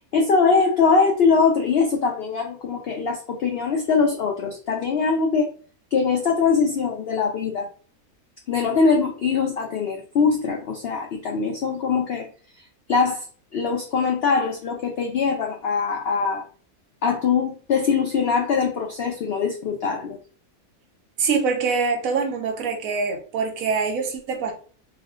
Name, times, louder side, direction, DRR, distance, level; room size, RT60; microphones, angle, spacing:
voice 1, 0.1-5.5 5.9-7.7 8.5-12.3 12.9-13.3 13.5-16.4 17.0-20.2, left 5 dB, 75° left, 1 dB, 0.5 m, -22 dB
voice 2, 21.2-24.5, right 5 dB, 70° right, 3 dB, 1.1 m, -24 dB
3.2 x 2.1 x 3.5 m, 0.42 s
omnidirectional pair, 1.6 m